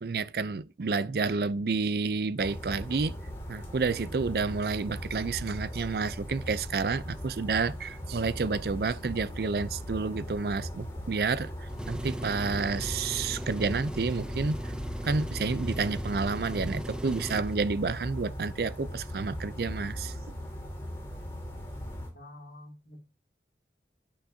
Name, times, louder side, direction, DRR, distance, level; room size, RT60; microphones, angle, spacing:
voice 1, 0.0-3.2 3.5-14.7 15.0-20.2, right 4 dB, 60° right, 0.5 m, -30 dB
Wetland and city rumble, 2.4-22.1, equal, 15° left, 2.1 m, -39 dB
Engine, 11.7-17.5, equal, 5° right, 0.4 m, -38 dB
voice 2, 22.1-23.0, left 1 dB, 70° left, 2.1 m, -48 dB
8.6 x 5.7 x 2.7 m
head